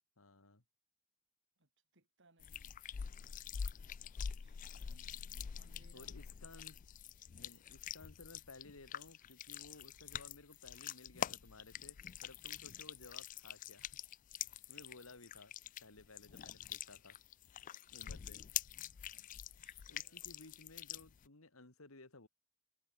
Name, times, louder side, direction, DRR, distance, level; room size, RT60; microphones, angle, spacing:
voice 1, 0.2-0.6 4.9-5.5 5.9-6.8 7.3-14.0 14.7-15.5 15.8-17.2 17.9-18.4 19.9-22.3, left 2 dB, 75° left, 2.6 m, -58 dB
voice 2, 1.6-2.8 4.4-5.0 5.5-6.1 18.0-18.4 19.1-19.3 19.6-20.3, right 2 dB, 60° right, 4.6 m, -71 dB
sound 1, 2.4-21.3, left 9 dB, 40° left, 0.3 m, -46 dB
head